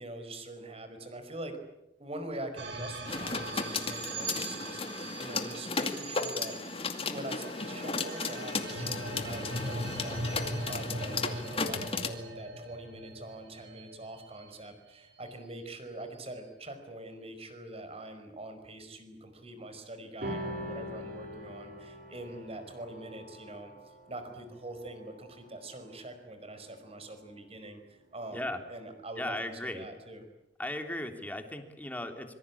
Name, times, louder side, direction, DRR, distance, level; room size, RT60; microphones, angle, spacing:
voice 1, 0.0-1.6 2.0-6.5 7.0-23.7 24.1-29.3 29.6-30.2, right 1 dB, 35° right, 8 dB, 5.2 m, -44 dB
sound 1, 2.6-15.0, right 2 dB, 90° right, 7.4 m, -40 dB
sound 2, 3.1-12.1, left 4 dB, 35° left, 2.4 m, -35 dB
sound 3, 20.2-26.9, equal, 60° right, 4.8 m, -43 dB
voice 2, 29.2-29.9 30.6-32.3, left 1 dB, 10° left, 5 dB, 3.2 m, -36 dB
26.0 x 24.5 x 8.6 m, 0.89 s
head